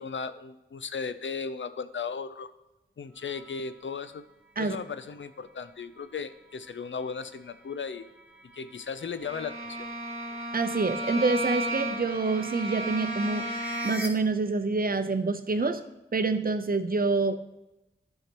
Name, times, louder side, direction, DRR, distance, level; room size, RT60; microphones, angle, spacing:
voice 1, 0.0-2.5 3.0-4.2 4.6-8.1 8.5-9.9, left 5 dB, 75° left, 12 dB, 0.5 m, -36 dB
sound 1, 3.1-14.1, equal, 5° right, 1.8 m, -47 dB
Bowed string instrument, 9.2-14.2, right 1 dB, 30° right, 1.7 m, -34 dB
voice 2, 10.5-13.5 13.8-15.8 16.1-17.3, right 3 dB, 50° right, 9 dB, 0.7 m, -27 dB
13.5 x 5.7 x 2.9 m, 0.99 s
wide cardioid pair, 45°, 20 cm